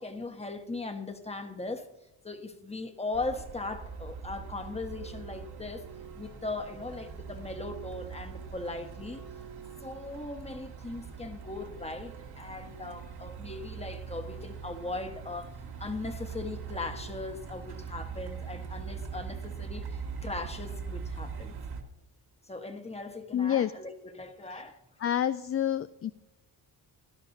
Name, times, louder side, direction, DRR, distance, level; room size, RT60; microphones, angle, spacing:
voice 1, 0.0-1.9 2.2-5.9 6.1-9.2 9.8-15.5 15.8-21.5 22.5-24.8, left 3 dB, 15° left, 1.3 m, -39 dB
Truck, 3.1-21.8, right 6 dB, 65° right, 1.9 m, -42 dB
voice 2, 23.3-23.7 24.5-24.6 25.0-26.1, left 10 dB, 35° left, 0.4 m, -28 dB
17.0 x 11.5 x 2.7 m
cardioid pair, 80°, 40 cm